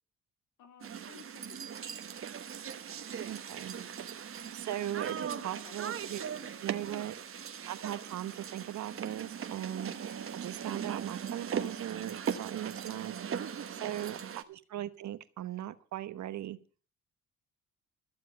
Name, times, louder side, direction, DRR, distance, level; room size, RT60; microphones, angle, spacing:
voice 1, 0.6-1.9 4.7-7.1 13.7-14.3, left 7 dB, 85° left, 2.3 m, -56 dB
sound 1, 0.8-14.4, right 8 dB, 45° right, 1.2 m, -39 dB
voice 2, 3.3-3.7 4.5-6.2 6.6-7.2 7.7-9.9 10.3-13.2 13.7-16.6, right 12 dB, 70° right, 1.0 m, -39 dB
14.5 x 7.4 x 7.6 m
cardioid pair, 90°, 30 cm